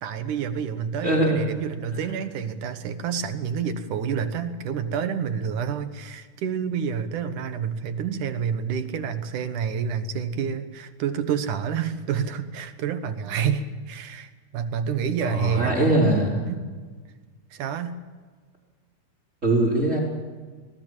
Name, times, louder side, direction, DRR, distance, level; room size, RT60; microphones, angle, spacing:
voice 1, 0.0-16.2 16.5-16.6 17.5-17.9, right 7 dB, 75° right, 9 dB, 2.9 m, -28 dB
voice 2, 1.0-1.4 1.9-2.1 15.2-16.4 19.4-20.0, right 1 dB, 20° right, -2 dB, 4.7 m, -22 dB
26.0 x 19.0 x 7.5 m, 1.4 s
omnidirectional pair, 3.7 m